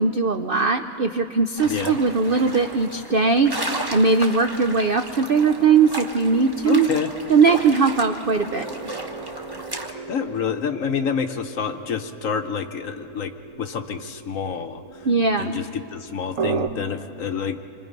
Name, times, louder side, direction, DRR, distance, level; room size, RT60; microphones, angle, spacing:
voice 1, 0.0-3.5 3.9-6.9 7.3-8.7 15.0-15.6, right 4 dB, 75° right, 7 dB, 0.5 m, -19 dB
sound 1, 1.6-9.9, right 1 dB, 15° right, 1.1 m, -34 dB
voice 2, 6.7-7.1 10.1-13.3 13.6-14.8 15.4-17.6, left 6 dB, 60° left, 8 dB, 1.1 m, -27 dB
sound 2, 8.5-16.7, right 5 dB, 50° right, 1.3 m, -35 dB
27.0 x 23.5 x 5.3 m, 2.6 s
omnidirectional pair, 1.9 m